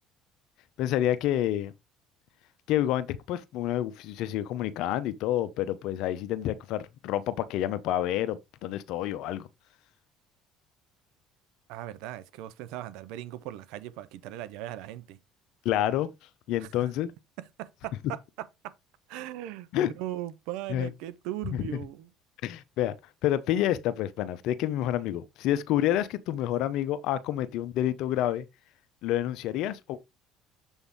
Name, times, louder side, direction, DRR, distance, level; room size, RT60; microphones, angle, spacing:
voice 1, 0.8-1.7 2.7-9.5 15.6-16.1 16.5-17.1 19.7-19.9 20.7-20.9 21.6-21.7 22.4-23.0 23.2-28.4 29.0-30.0, left 12 dB, 70° left, 0.7 m, -28 dB
voice 2, 11.7-15.2 16.6-16.7 17.6-18.2 19.1-19.7 20.0-22.1, right 13 dB, 75° right, 0.6 m, -38 dB
7.1 x 3.5 x 4.0 m
supercardioid pair, 75°, 0 cm